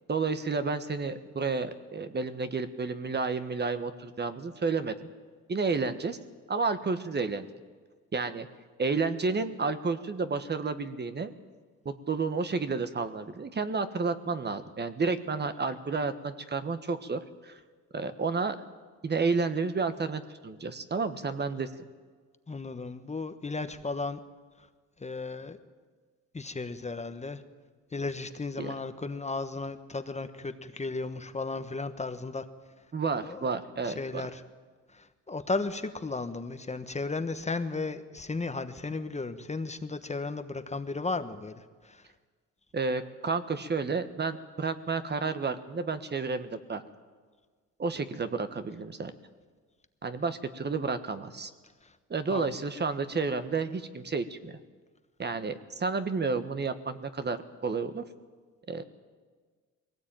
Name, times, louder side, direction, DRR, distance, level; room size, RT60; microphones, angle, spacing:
voice 1, 0.1-4.9 5.5-6.2 6.5-7.5 8.1-8.5 8.8-11.3 11.8-17.6 17.9-18.6 19.0-21.7 28.6-28.7 32.9-34.3 42.7-46.8 47.8-49.1 50.0-51.5 52.1-54.5 55.2-57.4 57.6-58.0 58.7-58.8, right 4 dB, 35° right, 9 dB, 1.4 m, -31 dB
voice 2, 22.5-24.2 24.6-24.7 25.0-25.6 26.3-27.4 27.9-32.4 33.2-33.5 33.8-34.4 34.9-42.1 51.8-51.9 52.3-52.5, left 3 dB, 20° left, 9 dB, 1.3 m, -35 dB
21.0 x 18.0 x 9.0 m, 1.5 s
cardioid pair, 90°, 30 cm